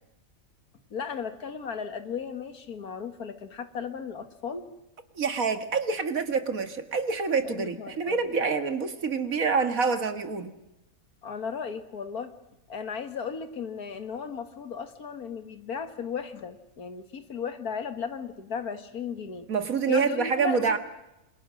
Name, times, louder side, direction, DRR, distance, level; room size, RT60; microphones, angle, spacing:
voice 1, 0.9-4.7 7.4-8.5 11.2-12.3 12.7-19.5 19.9-20.8, left 6 dB, 85° left, 9 dB, 2.2 m, -35 dB
voice 2, 5.2-10.5 19.5-20.8, right 5 dB, 70° right, 9 dB, 2.2 m, -27 dB
27.5 x 27.0 x 6.3 m, 0.92 s
omnidirectional pair, 1.5 m